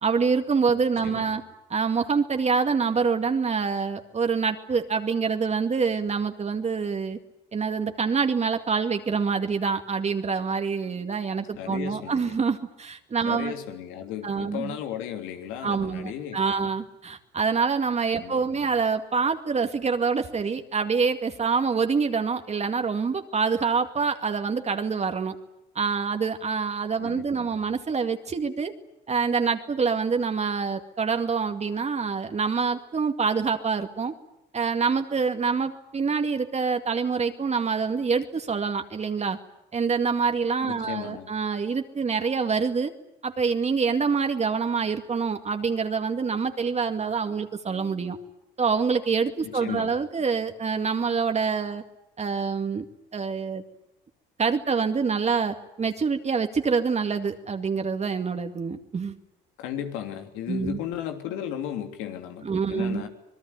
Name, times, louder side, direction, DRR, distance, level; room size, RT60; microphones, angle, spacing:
voice 1, 0.0-1.4 1.7-7.2 7.5-13.5 14.2-14.8 15.6-25.4 25.8-28.7 29.1-34.1 34.5-39.4 39.7-42.9 43.2-48.2 48.6-51.8 52.2-52.9 53.1-53.6 54.4-59.1 60.5-60.8 62.4-63.0, right 5 dB, 35° right, 6 dB, 2.2 m, -26 dB
voice 2, 1.0-1.4 11.6-12.4 13.3-16.7 18.2-18.6 27.0-27.6 40.6-41.3 49.4-50.0 59.6-63.1, left 10 dB, 90° left, 6 dB, 3.1 m, -35 dB
25.5 x 20.0 x 9.7 m, 0.87 s
supercardioid pair, 85°, 19 cm